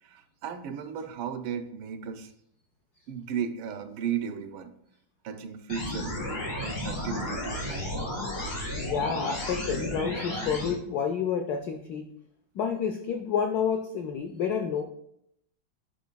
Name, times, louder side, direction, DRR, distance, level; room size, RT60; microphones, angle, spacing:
voice 1, 0.0-2.3 3.1-4.7 5.2-8.1, right 7 dB, 90° right, 8 dB, 1.4 m, -35 dB
sound 1, 5.7-10.7, left 1 dB, 45° left, 3.1 m, -33 dB
voice 2, 8.8-12.1 12.5-14.8, left 7 dB, 90° left, 5 dB, 0.8 m, -29 dB
9.2 x 5.1 x 2.2 m, 0.74 s
omnidirectional pair, 2.2 m